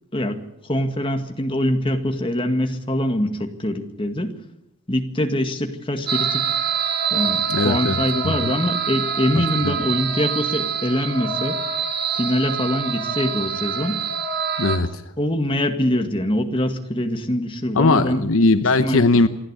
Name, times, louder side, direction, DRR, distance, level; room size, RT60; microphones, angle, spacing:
voice 1, 0.1-4.3 4.9-6.4 7.1-11.6 12.2-14.0 15.2-18.2 18.8-19.0, left 1 dB, 25° left, 5 dB, 1.9 m, -23 dB
sound 1, 6.1-14.8, right 7 dB, 45° right, 2.1 m, -25 dB
voice 2, 7.5-8.4 9.6-9.7 14.6-15.0 17.7-19.3, left 3 dB, 65° left, 10 dB, 0.9 m, -19 dB
27.5 x 10.5 x 9.9 m, 0.85 s
head